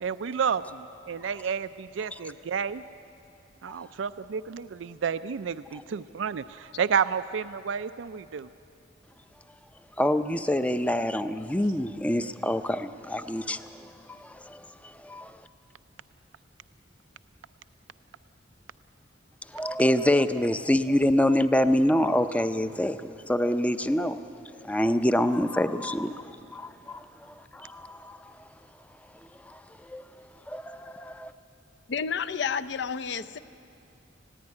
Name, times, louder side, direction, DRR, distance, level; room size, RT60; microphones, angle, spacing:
voice 1, 0.0-2.8 3.6-8.5, right 6 dB, 85° right, 13 dB, 0.4 m, -30 dB
voice 2, 10.0-15.4 19.5-24.2 24.6-26.2 26.5-27.1 27.5-28.2 29.5-30.0 30.5-31.3, left 1 dB, 5° left, 11 dB, 0.5 m, -26 dB
voice 3, 31.9-33.4, left 6 dB, 65° left, 12 dB, 0.6 m, -30 dB
20.0 x 15.5 x 9.7 m, 2.7 s
head